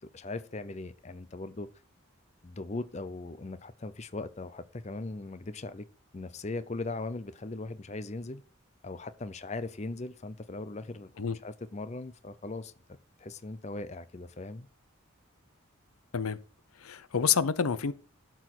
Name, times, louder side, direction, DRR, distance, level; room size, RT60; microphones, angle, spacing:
voice 1, 0.0-1.7 2.4-5.9 6.1-8.4 8.8-12.7 13.2-14.7, left 2 dB, 30° left, 0.5 m, -39 dB
voice 2, 16.8-17.9, left 7 dB, 85° left, 0.7 m, -28 dB
12.5 x 4.6 x 6.0 m
head